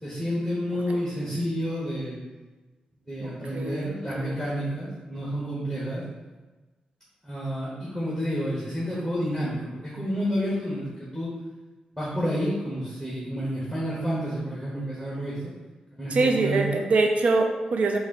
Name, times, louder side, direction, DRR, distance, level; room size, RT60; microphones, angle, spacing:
voice 1, 0.0-2.2 3.1-6.0 7.2-11.3 11.9-15.5 15.9-16.8, equal, 5° right, -8 dB, 1.3 m, -30 dB
voice 2, 3.2-4.4 16.1-18.0, right 3 dB, 65° right, 3 dB, 0.5 m, -24 dB
4.1 x 2.6 x 4.2 m, 1.2 s
cardioid pair, 85°, 2 cm